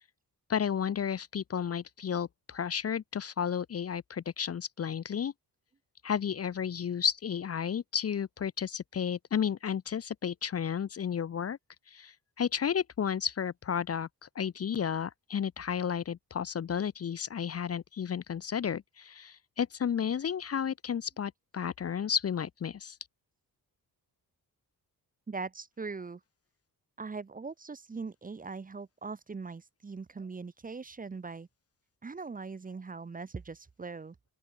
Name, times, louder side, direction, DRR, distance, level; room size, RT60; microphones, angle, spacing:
voice 1, 0.5-5.3 6.0-11.6 11.9-23.0, left 8 dB, 40° left, 0.8 m, -32 dB
voice 2, 25.3-26.2 27.0-31.5 32.0-34.1, right 4 dB, 20° right, 0.9 m, -41 dB
open air
wide cardioid pair, 165°, 38 cm